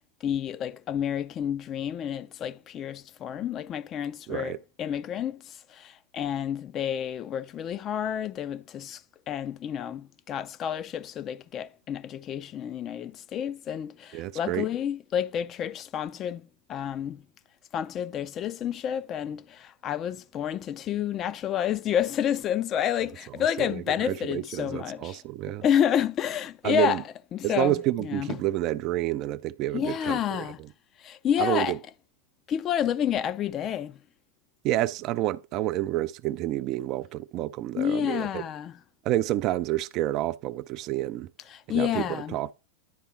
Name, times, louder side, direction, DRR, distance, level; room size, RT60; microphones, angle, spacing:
voice 1, 0.2-9.0 9.3-17.2 17.7-25.2 25.5-27.0 27.3-28.4 29.7-30.6 31.0-31.8 32.5-34.0 37.8-38.8 41.5-42.4, left 9 dB, 30° left, 0.4 m, -29 dB
voice 2, 4.3-4.6 14.1-14.7 23.6-25.6 26.6-27.0 27.4-30.5 31.4-31.8 34.6-38.4 39.0-41.3 41.7-42.5, right 15 dB, 40° right, 0.3 m, -29 dB
10.5 x 3.5 x 5.8 m
figure-of-eight pair, 90°, 0 cm